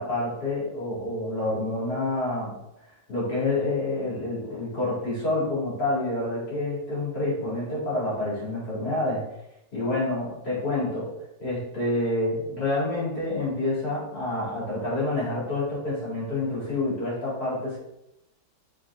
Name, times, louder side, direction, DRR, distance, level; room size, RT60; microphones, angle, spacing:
voice 1, 0.0-2.6 3.1-9.3 9.7-11.1 11.4-17.8, left 2 dB, 55° left, -7 dB, 2.9 m, -28 dB
6.1 x 4.4 x 3.5 m, 0.85 s
omnidirectional pair, 2.1 m